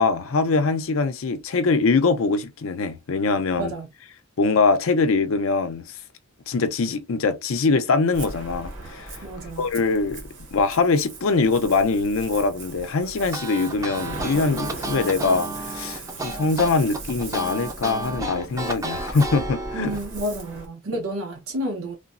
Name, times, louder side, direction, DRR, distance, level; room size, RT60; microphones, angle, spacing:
voice 1, 0.0-3.7 4.4-6.0 6.5-9.1 9.6-10.2 10.5-19.9, left 4 dB, 70° left, 0.5 m, -23 dB
voice 2, 3.6-3.9 9.2-9.7 19.7-22.0, right 1 dB, 90° right, 0.7 m, -30 dB
Ocean, 8.1-20.7, right 2 dB, 60° right, 0.9 m, -38 dB
sound 1, 13.2-20.0, right 2 dB, 15° right, 0.4 m, -32 dB
3.3 x 2.0 x 2.4 m
head